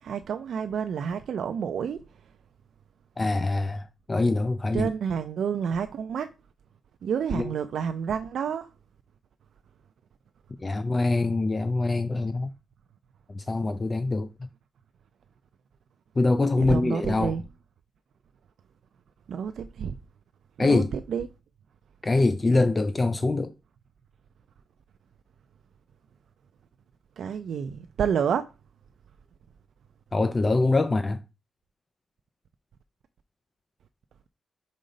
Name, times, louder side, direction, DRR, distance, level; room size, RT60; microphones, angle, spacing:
voice 1, 0.0-2.0 4.7-6.3 7.0-8.7 16.5-17.4 19.3-20.0 20.6-21.3 27.2-28.5, right 7 dB, 65° right, 0.4 m, -29 dB
voice 2, 3.2-4.9 7.3-7.5 10.6-12.5 13.3-14.5 16.2-17.3 20.6-20.9 22.0-23.5 30.1-31.2, left 2 dB, 20° left, 0.3 m, -24 dB
5.2 x 3.8 x 5.2 m
wide cardioid pair, 175°, 0 cm